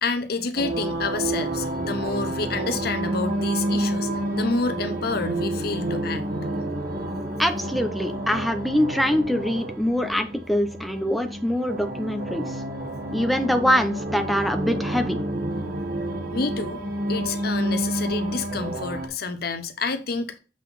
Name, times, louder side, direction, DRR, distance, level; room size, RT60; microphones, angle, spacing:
voice 1, 0.0-6.2 16.3-16.8 17.1-20.4, left 4 dB, 60° left, 0.9 m, -28 dB
sound 1, 0.6-19.1, right 1 dB, 55° right, 1.5 m, -29 dB
voice 2, 7.4-12.6 13.1-15.2, equal, ahead, 0.7 m, -24 dB
7.4 x 4.0 x 4.1 m
head